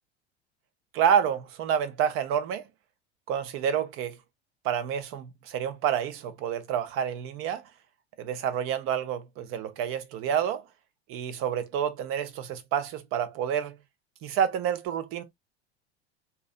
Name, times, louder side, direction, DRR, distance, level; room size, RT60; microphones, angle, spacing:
voice 1, 0.9-2.6 3.3-4.2 4.6-7.6 8.2-10.7 11.1-13.8 14.2-15.2, right 8 dB, 40° right, 0.6 m, -28 dB
2.7 x 2.3 x 2.3 m
figure-of-eight pair, 80°, 33 cm